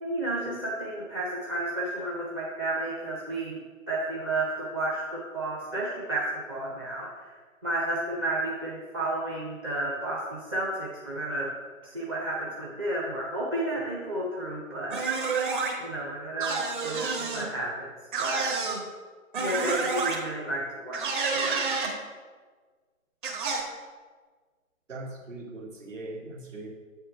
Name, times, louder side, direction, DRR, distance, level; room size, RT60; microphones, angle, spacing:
voice 1, 0.0-3.6 3.9-7.3 7.6-11.5 11.8-15.0 15.8-17.9 18.2-18.4 19.4-21.9, right 1 dB, 20° right, -5 dB, 0.6 m, -32 dB
sound 1, 14.9-15.7 16.4-17.5 18.1-18.8 19.3-20.2 20.9-21.9 23.2-23.6, right 4 dB, 35° right, 1.4 m, -29 dB
voice 2, 24.9-26.7, right 2 dB, 65° right, -3 dB, 1.8 m, -40 dB
8.3 x 4.4 x 5.1 m, 1.5 s
figure-of-eight pair, 135°, 41 cm